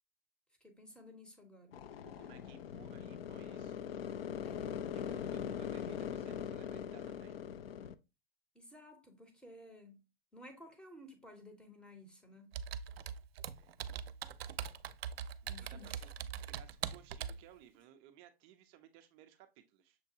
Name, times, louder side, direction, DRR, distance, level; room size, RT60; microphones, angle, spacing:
voice 1, 0.6-1.8 4.4-4.8 8.5-10.0 10.3-12.5 15.5-16.0, left 1 dB, 5° left, 0.7 m, -55 dB
sound 1, 1.7-7.9, left 8 dB, 75° left, 0.5 m, -41 dB
voice 2, 2.0-3.7 5.1-7.4 13.5-13.8 15.4-16.1 16.5-20.0, right 10 dB, 20° right, 0.3 m, -60 dB
Computer keyboard, 12.5-17.4, right 8 dB, 75° right, 0.5 m, -42 dB
6.6 x 2.2 x 2.7 m
hypercardioid pair, 130°, 30 cm